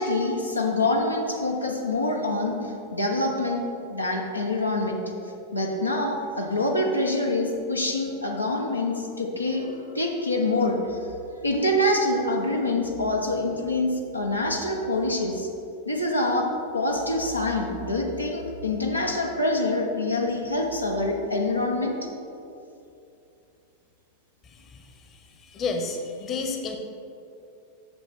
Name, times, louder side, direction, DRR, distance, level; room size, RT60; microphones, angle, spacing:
voice 1, 0.0-5.0 5.5-11.0 11.4-15.5 15.8-16.5 16.7-22.0, left 2 dB, 85° left, 0 dB, 0.9 m, -26 dB
voice 2, 25.5-26.8, left 4 dB, 30° left, 4 dB, 0.9 m, -29 dB
8.1 x 6.8 x 4.4 m, 2.7 s
figure-of-eight pair, 90°, 0 cm